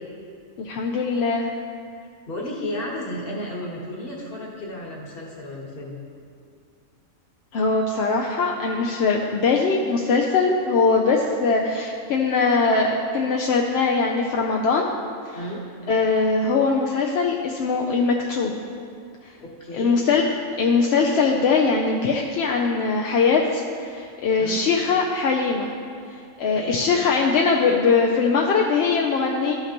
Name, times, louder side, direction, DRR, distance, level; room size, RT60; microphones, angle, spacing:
voice 1, 0.6-1.5 7.5-14.9 15.9-18.5 19.7-23.6 23.9-25.7 26.4-29.5, left 4 dB, 65° left, 0 dB, 0.7 m, -21 dB
voice 2, 2.0-6.0 15.3-15.6 19.4-20.0 24.4-24.6 26.4-26.8, left 1 dB, 45° left, -3 dB, 1.4 m, -33 dB
12.5 x 5.8 x 2.9 m, 2.3 s
omnidirectional pair, 1.4 m